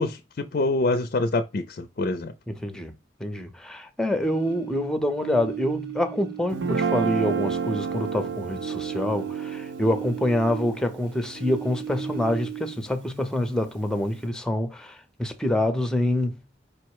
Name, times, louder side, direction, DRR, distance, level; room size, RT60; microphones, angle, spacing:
voice 1, 0.0-2.3, left 2 dB, 50° left, 0.4 m, -26 dB
voice 2, 2.5-2.9 3.2-16.4, left 1 dB, 5° left, 0.6 m, -26 dB
sound 1, 4.2-6.7 7.0-10.9 11.3-12.9, right 10 dB, 60° right, 0.9 m, -36 dB
Guitar, 6.5-12.8, right 5 dB, 80° right, 0.5 m, -31 dB
5.2 x 2.0 x 4.6 m
head